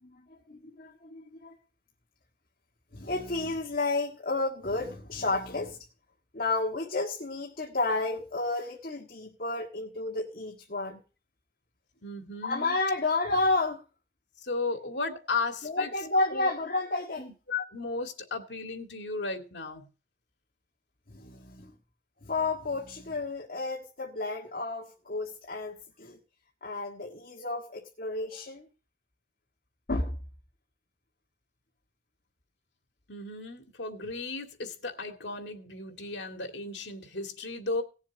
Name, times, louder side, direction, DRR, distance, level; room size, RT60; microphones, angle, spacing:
voice 1, 0.0-1.5 2.9-5.8 6.3-11.0 12.4-13.8 15.6-17.2 21.1-21.7 22.2-26.2 26.6-28.7 29.9-30.2, left 2 dB, 55° left, 1.7 m, -31 dB
voice 2, 12.0-12.8 14.4-15.9 16.3-16.5 17.2-19.9 33.1-37.8, left 3 dB, 80° left, 2.2 m, -35 dB
18.0 x 7.2 x 4.0 m
head